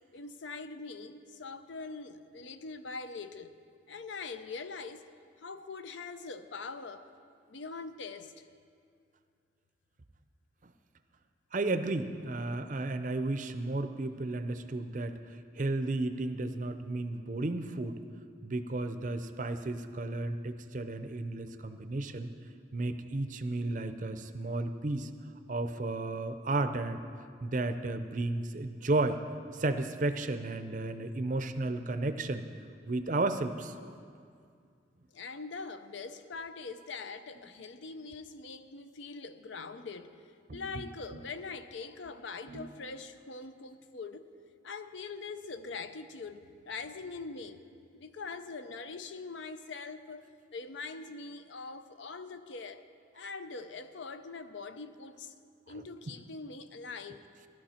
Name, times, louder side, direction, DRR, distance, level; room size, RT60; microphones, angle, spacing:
voice 1, 0.1-3.5 3.9-5.0 5.4-7.1 7.5-8.5 35.1-40.1 40.5-44.2 44.6-47.6 47.9-52.9 53.1-55.3 55.7-57.2, left 4 dB, 70° left, 10 dB, 0.6 m, -43 dB
voice 2, 11.5-15.2 15.6-18.0 18.4-22.3 22.7-25.1 25.5-27.0 27.4-29.2 29.5-32.5 32.9-33.7 40.5-40.8 41.1-41.2 42.5-42.7 56.1-56.2, right 2 dB, 40° right, 9 dB, 0.5 m, -33 dB
16.0 x 12.0 x 4.3 m, 2.2 s
head